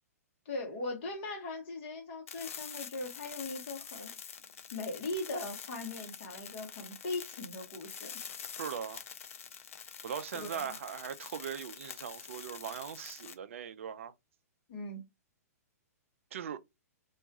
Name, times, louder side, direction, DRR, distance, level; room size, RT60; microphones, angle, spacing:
voice 1, 0.4-4.1 4.7-8.2 10.4-10.6 14.7-15.0, left 2 dB, 40° left, 1.0 m, -39 dB
sound 1, 2.3-13.3, left 7 dB, 55° left, 0.4 m, -46 dB
voice 2, 8.6-9.0 10.0-14.1 16.3-16.6, right 8 dB, 55° right, 0.3 m, -40 dB
2.4 x 2.2 x 2.7 m
figure-of-eight pair, 110°, 9 cm